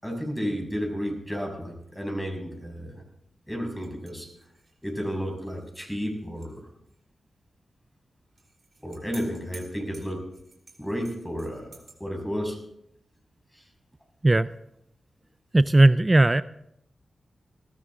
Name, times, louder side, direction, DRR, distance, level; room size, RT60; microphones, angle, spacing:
voice 1, 0.0-3.0 3.5-4.3 4.8-6.7 8.8-10.2 10.8-12.6 13.5-13.6, equal, 5° left, 2 dB, 6.2 m, -32 dB
sound 1, 3.8-6.6 6.9-7.0 8.4-12.0, right 3 dB, 55° right, 3.3 m, -52 dB
voice 2, 15.5-16.4, right 2 dB, 25° right, 16 dB, 0.4 m, -17 dB
19.5 x 13.5 x 3.7 m, 0.77 s
cardioid pair, 50°, 0 cm